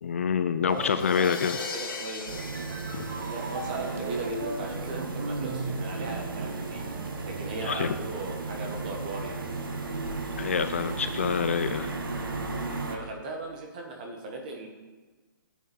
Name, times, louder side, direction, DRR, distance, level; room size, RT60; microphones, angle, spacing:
voice 1, 0.0-1.6 2.9-3.0 7.7-7.9 10.4-11.9, left 7 dB, 40° left, 11 dB, 0.4 m, -27 dB
voice 2, 0.6-2.6 3.2-6.9 7.2-9.4 12.9-14.7, right 2 dB, 25° right, 1 dB, 1.7 m, -38 dB
Crash cymbal, 0.7-4.4, left 3 dB, 75° left, 2.3 m, -39 dB
sound 1, 1.3-8.0, right 3 dB, 40° right, 1.2 m, -38 dB
sound 2, 2.3-13.0, right 3 dB, 85° right, 1.9 m, -35 dB
14.0 x 9.1 x 4.6 m, 1.3 s
hypercardioid pair, 180°, 11 cm